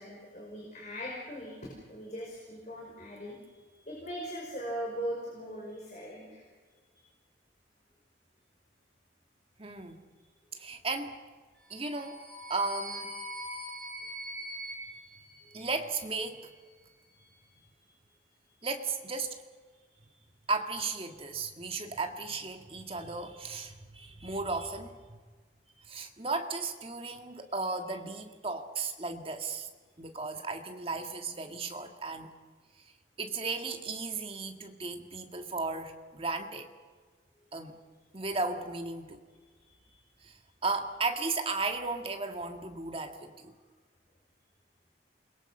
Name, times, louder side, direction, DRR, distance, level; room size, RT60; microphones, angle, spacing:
voice 1, 0.0-3.4 3.7-6.4 6.9-7.0 14.9-15.0 15.4-15.6 17.1-17.8 18.4-18.6 20.0-20.1 39.6-40.0, equal, 40° left, -3 dB, 5.5 m, -41 dB
voice 2, 9.6-10.1 10.5-11.2 11.7-12.2 12.5-13.2 15.5-16.5 18.6-19.4 20.5-25.2 25.8-29.7 30.0-32.3 33.2-36.7 37.5-37.8 38.1-39.2 40.2-43.5, right 3 dB, 30° right, 5 dB, 1.9 m, -35 dB
sound 1, 11.7-16.1, equal, 5° left, 3.7 m, -42 dB
28.5 x 22.5 x 5.6 m, 1.5 s
head